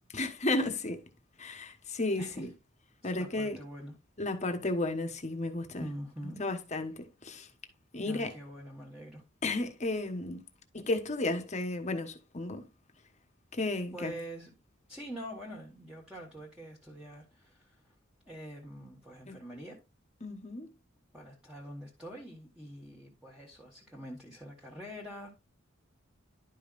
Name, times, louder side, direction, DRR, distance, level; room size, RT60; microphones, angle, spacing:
voice 1, 0.1-1.0 1.4-2.5 3.0-3.6 4.2-5.9 6.4-7.5 7.9-8.3 9.4-10.4 10.7-12.6 13.5-14.1 19.3-19.4 20.2-20.7, left 2 dB, 35° left, 1.2 m, -33 dB
voice 2, 2.2-2.5 3.0-3.9 5.8-6.4 8.0-9.2 13.9-14.5 14.9-17.9 18.3-19.8 21.1-25.3, equal, 5° right, 1.5 m, -45 dB
11.0 x 5.5 x 2.5 m
head